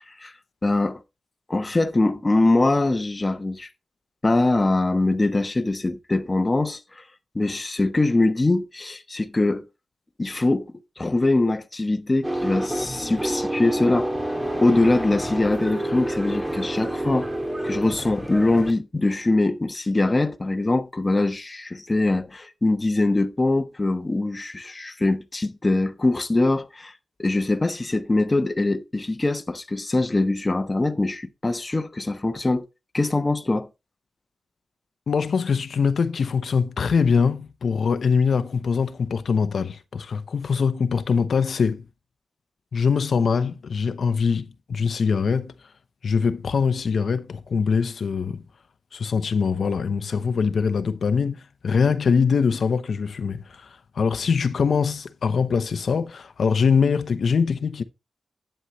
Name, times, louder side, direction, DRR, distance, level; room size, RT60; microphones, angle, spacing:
voice 1, 0.6-1.0 1.5-3.7 4.2-7.0 7.3-9.7 10.2-14.1 14.6-17.3 17.6-26.9 27.2-32.7 32.9-33.7, left 2 dB, 25° left, 1.1 m, -23 dB
sound 1, 12.2-18.7, right 1 dB, 15° right, 2.0 m, -28 dB
voice 2, 35.1-41.8 42.7-45.5 46.0-48.4 48.9-57.8, left 5 dB, 75° left, 0.8 m, -23 dB
11.0 x 9.1 x 3.1 m
wide cardioid pair, 95°, 0 cm